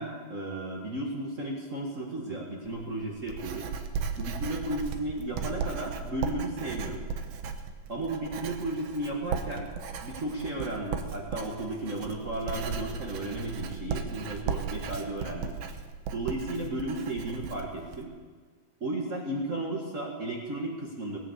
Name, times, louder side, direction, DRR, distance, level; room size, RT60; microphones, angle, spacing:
voice 1, 0.0-3.7 4.2-7.1 7.9-9.7 10.0-15.6 16.1-18.1 18.8-21.2, right 1 dB, 60° right, -1 dB, 0.7 m, -34 dB
Writing, 2.6-18.0, right 6 dB, 85° right, 1.4 m, -36 dB
18.0 x 9.2 x 8.1 m, 1.5 s
omnidirectional pair, 4.3 m